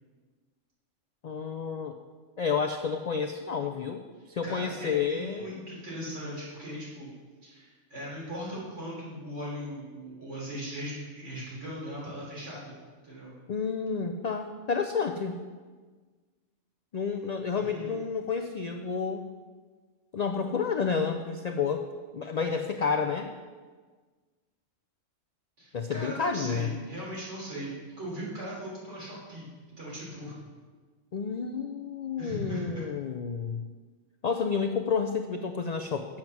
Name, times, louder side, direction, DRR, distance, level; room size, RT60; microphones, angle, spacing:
voice 1, 1.2-2.0 2.4-4.0 4.3-5.5 13.5-15.4 16.9-19.2 20.1-21.9 22.1-23.3 25.7-26.7 31.1-33.7 34.2-36.2, left 5 dB, 85° left, 5 dB, 0.3 m, -30 dB
voice 2, 4.4-7.1 7.4-12.7 13.0-13.4 17.5-17.9 25.6-29.5 29.8-30.4 32.2-32.9, equal, 65° right, -6 dB, 3.9 m, -39 dB
7.9 x 7.3 x 5.9 m, 1.4 s
omnidirectional pair, 1.3 m